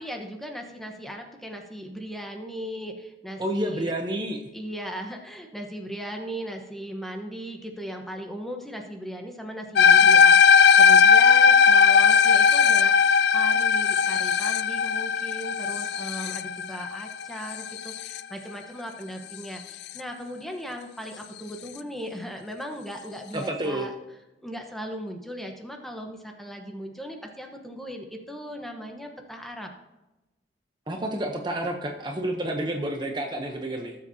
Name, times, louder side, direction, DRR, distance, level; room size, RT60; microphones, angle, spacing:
voice 1, 0.0-3.9 4.5-23.9 24.4-29.7, equal, ahead, 2 dB, 1.1 m, -38 dB
voice 2, 3.4-4.4 23.3-23.9 30.9-34.0, right 1 dB, 25° right, 3 dB, 0.8 m, -29 dB
sound 1, 9.8-18.2, left 6 dB, 65° left, 0.3 m, -18 dB
17.5 x 7.5 x 2.8 m, 0.99 s
head